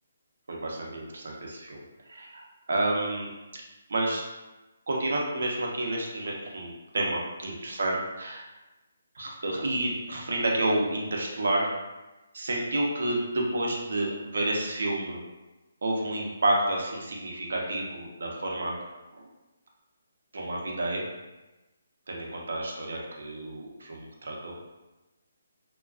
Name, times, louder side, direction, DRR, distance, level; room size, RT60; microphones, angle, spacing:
voice 1, 0.5-1.8 2.1-3.3 3.9-4.2 4.9-8.4 9.1-11.7 12.3-15.2 15.8-18.8 19.1-19.3 20.3-21.0 22.1-24.6, right 1 dB, 70° right, -1 dB, 0.6 m, -30 dB
2.4 x 2.1 x 2.4 m, 1.1 s
hypercardioid pair, 155°, 0 cm